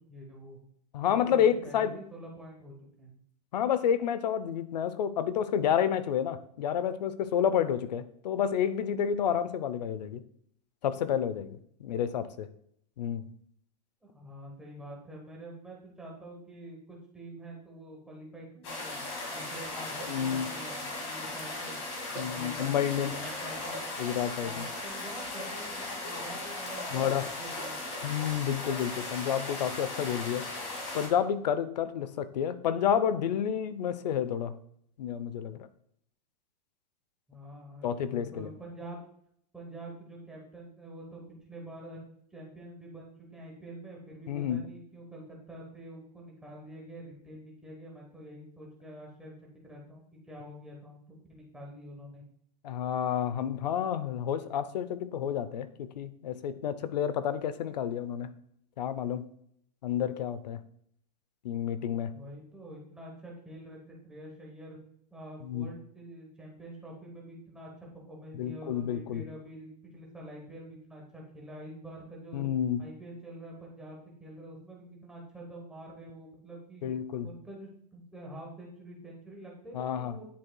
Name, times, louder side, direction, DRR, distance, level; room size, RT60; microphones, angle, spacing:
voice 1, 0.1-0.6 1.0-3.1 14.0-19.0 19.3-21.8 22.1-23.9 24.4-27.8 37.3-39.0 39.5-42.0 42.3-52.2 62.1-64.8 65.1-67.7 68.1-72.4 72.8-76.9 77.2-80.3, right 1 dB, 5° right, -2 dB, 1.0 m, -47 dB
voice 2, 0.9-2.0 3.5-10.2 10.8-12.5 13.0-13.2 20.1-20.5 22.2-23.2 24.0-24.6 26.9-27.3 28.0-30.5 30.9-34.5 35.0-35.6 37.8-38.5 44.3-44.6 52.6-58.3 58.8-59.2 59.8-60.6 61.4-62.1 65.4-65.7 68.3-69.2 72.3-72.8 76.8-77.3 79.7-80.2, left 9 dB, 80° left, 13 dB, 0.6 m, -30 dB
sound 1, 18.6-31.1, left 2 dB, 40° left, 2.1 m, -37 dB
10.0 x 4.7 x 2.2 m, 0.67 s
supercardioid pair, 175°, 21 cm